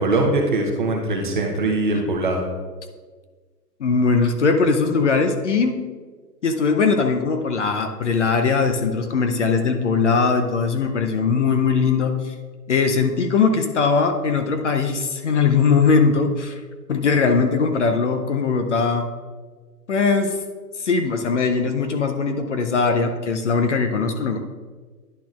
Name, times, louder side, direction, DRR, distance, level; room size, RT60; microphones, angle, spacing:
voice 1, 0.0-2.4, right 2 dB, 30° right, 1 dB, 0.6 m, -21 dB
voice 2, 3.8-5.8 6.4-12.3 12.7-16.6 16.9-19.1 19.9-20.4 20.8-24.4, left 5 dB, 50° left, 6 dB, 0.6 m, -20 dB
10.5 x 6.0 x 2.3 m, 1.4 s
hypercardioid pair, 165°, 49 cm